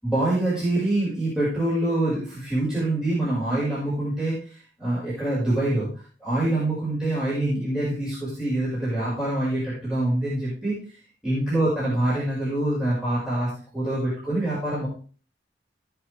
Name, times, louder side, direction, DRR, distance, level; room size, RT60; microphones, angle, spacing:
voice 1, 0.0-5.9 6.2-10.7 11.2-14.9, right 1 dB, 5° right, -10 dB, 5.3 m, -25 dB
17.5 x 6.1 x 3.5 m, 0.39 s
head